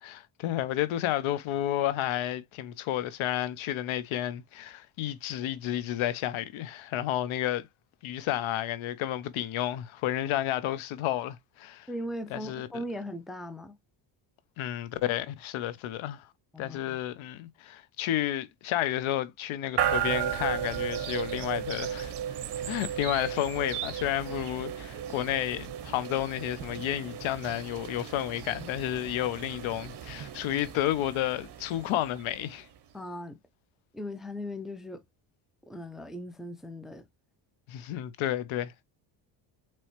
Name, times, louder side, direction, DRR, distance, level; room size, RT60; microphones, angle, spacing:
voice 1, 0.0-7.7 8.0-11.9 12.3-12.7 14.6-16.3 16.6-22.1 22.7-32.7 37.7-38.8, left 13 dB, 70° left, 0.8 m, -31 dB
voice 2, 11.9-13.8 16.5-17.0 32.9-33.4 33.9-35.0 35.7-37.0, left 1 dB, ahead, 0.5 m, -38 dB
sound 1, 19.8-32.8, right 10 dB, 55° right, 0.9 m, -35 dB
4.1 x 3.1 x 3.0 m
supercardioid pair, 85°, 50 cm